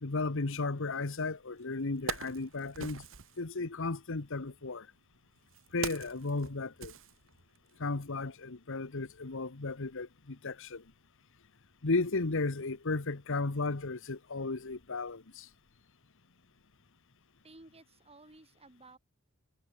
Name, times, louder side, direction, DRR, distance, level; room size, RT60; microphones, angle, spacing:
voice 1, 0.0-3.0 3.4-4.9 5.7-6.9 7.8-10.8 11.8-15.5, left 3 dB, 65° left, 1.2 m, -34 dB
Wood, 1.2-1.3 1.8-3.4 4.4-7.7 8.0-8.2, right 5 dB, 65° right, 1.6 m, -42 dB
voice 2, 17.4-19.0, right 2 dB, 30° right, 7.0 m, -55 dB
head